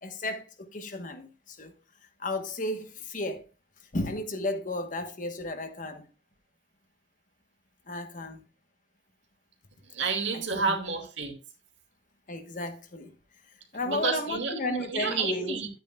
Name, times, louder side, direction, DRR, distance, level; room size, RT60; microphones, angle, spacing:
voice 1, 0.0-1.7 2.2-3.5 3.9-6.1 7.9-8.4 10.3-10.8 12.3-13.1 13.5-15.6, left 2 dB, 45° left, 1.1 m, -34 dB
voice 2, 9.8-11.3 13.8-15.7, right 5 dB, 75° right, 2.2 m, -30 dB
11.0 x 8.9 x 2.3 m
head